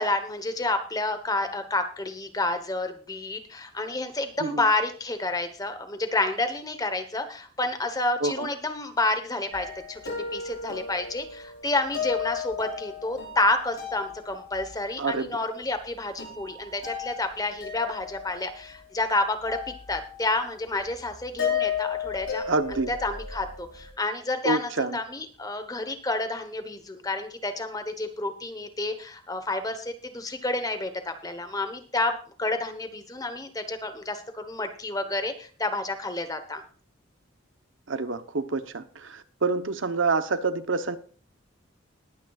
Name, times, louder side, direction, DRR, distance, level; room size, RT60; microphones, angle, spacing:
voice 1, 0.0-19.6 19.9-22.4 22.7-36.6, left 2 dB, 20° left, 1.1 m, -29 dB
sound 1, 9.5-14.8 15.9-16.0 16.2-19.0 19.4-20.4 20.7-23.9, left 7 dB, 85° left, 5.9 m, -34 dB
voice 2, 15.0-15.3 22.5-22.9 24.4-25.0 37.9-41.0, right 3 dB, 70° right, 0.9 m, -27 dB
20.0 x 9.1 x 2.4 m
head